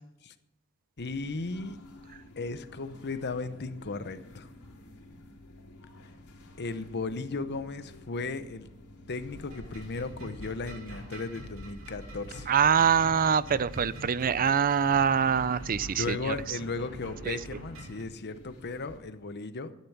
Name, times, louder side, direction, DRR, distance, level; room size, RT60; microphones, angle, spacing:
sound 1, 1.0-19.0, left 1 dB, 85° left, 4.1 m, -50 dB
voice 1, 1.0-1.8 2.4-4.5 6.6-8.7 9.1-12.5 15.9-19.7, left 3 dB, 50° left, 12 dB, 0.9 m, -36 dB
sound 2, 9.3-18.0, right 1 dB, 65° right, 3.1 m, -45 dB
voice 2, 12.5-16.3 17.3-17.4, right 7 dB, 40° right, 17 dB, 0.5 m, -24 dB
12.5 x 10.5 x 7.2 m, 0.90 s
head